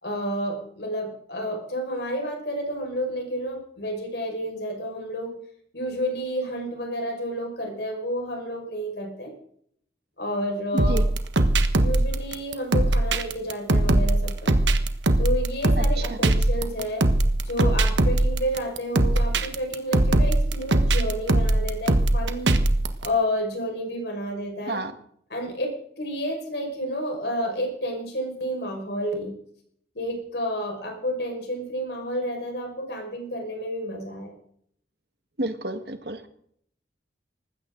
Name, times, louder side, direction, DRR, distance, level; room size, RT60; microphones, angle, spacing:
voice 1, 0.0-5.4 5.7-9.3 10.2-11.0 11.8-14.8 15.2-17.1 17.5-22.6 23.0-24.8 25.3-29.4 29.9-34.4, equal, 65° left, 2 dB, 5.6 m, -30 dB
sound 1, 10.8-23.1, right 1 dB, 80° right, 1.3 m, -21 dB
voice 2, 15.8-16.2 24.7-24.9 35.4-36.3, right 2 dB, 60° right, 8 dB, 1.7 m, -31 dB
19.5 x 15.5 x 3.9 m, 0.66 s
head